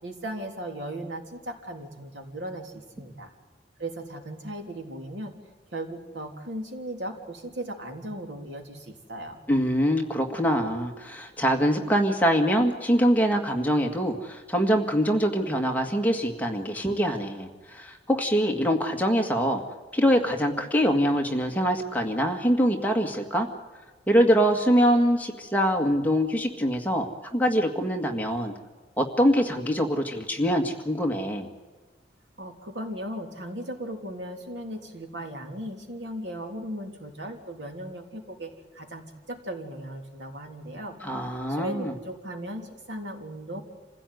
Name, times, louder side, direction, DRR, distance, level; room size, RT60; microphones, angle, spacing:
voice 1, 0.0-3.3 3.8-5.3 5.7-9.4 32.4-43.6, right 1 dB, 85° right, 3 dB, 3.4 m, -37 dB
voice 2, 9.5-19.6 19.9-23.5 24.1-27.1 27.3-28.5 29.0-31.5 41.0-41.9, equal, 10° left, 2 dB, 2.0 m, -24 dB
27.0 x 16.0 x 9.4 m, 1.3 s
head